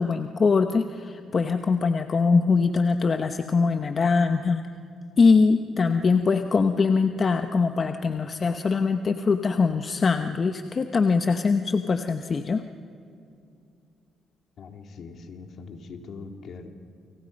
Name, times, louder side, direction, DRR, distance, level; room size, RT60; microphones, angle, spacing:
voice 1, 0.0-4.6 5.2-12.6, left 4 dB, 40° left, 7 dB, 1.0 m, -22 dB
voice 2, 14.6-16.7, left 4 dB, 60° left, 5 dB, 2.4 m, -41 dB
29.5 x 26.0 x 5.4 m, 2.5 s
cardioid pair, 90°, 0 cm